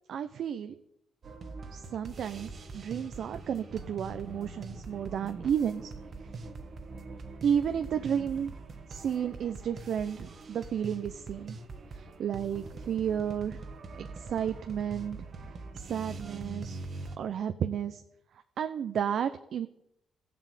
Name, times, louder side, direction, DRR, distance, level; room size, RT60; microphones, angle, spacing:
voice 1, 0.1-0.8 1.7-5.9 6.2-6.3 7.4-8.5 8.9-11.6 11.9-13.6 14.0-15.3 15.7-16.8 17.2-18.0 18.6-19.7, right 8 dB, 65° right, 9 dB, 0.7 m, -32 dB
sound 1, 1.2-17.2, right 3 dB, 50° right, 1.5 m, -43 dB
14.0 x 7.7 x 8.4 m, 0.78 s
cardioid pair, 90°, 0 cm